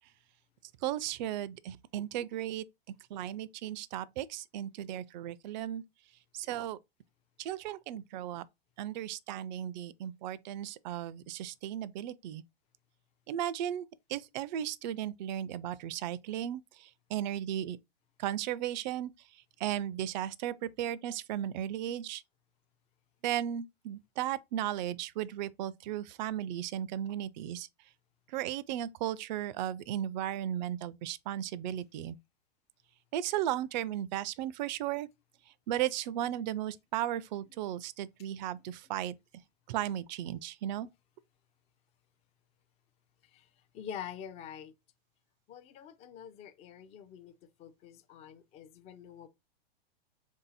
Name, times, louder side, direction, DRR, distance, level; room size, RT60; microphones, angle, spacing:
voice 1, 0.8-2.6 3.1-5.8 6.3-6.8 7.4-8.4 8.8-12.4 13.3-17.8 18.2-19.1 19.6-22.2 23.2-27.7 28.3-32.2 33.1-35.1 35.7-39.1 39.7-40.9, right 11 dB, 50° right, 0.4 m, -35 dB
voice 2, 43.7-44.7 45.5-49.3, left 9 dB, 20° left, 0.4 m, -46 dB
3.8 x 2.7 x 3.9 m
hypercardioid pair, 120°, 31 cm